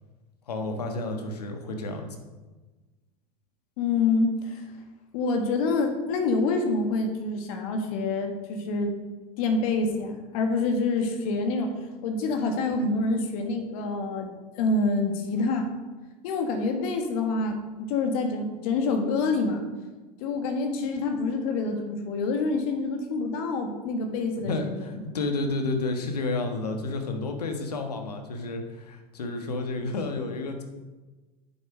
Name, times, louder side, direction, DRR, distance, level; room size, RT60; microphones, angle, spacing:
voice 1, 0.5-2.2 24.4-30.6, left 2 dB, 90° left, 5 dB, 1.4 m, -31 dB
voice 2, 3.8-4.6 5.1-9.0 9.4-15.7 16.2-19.7 20.2-24.9, left 3 dB, 65° left, 5 dB, 1.7 m, -27 dB
8.5 x 7.2 x 5.1 m, 1.2 s
hypercardioid pair, 90°, 20 cm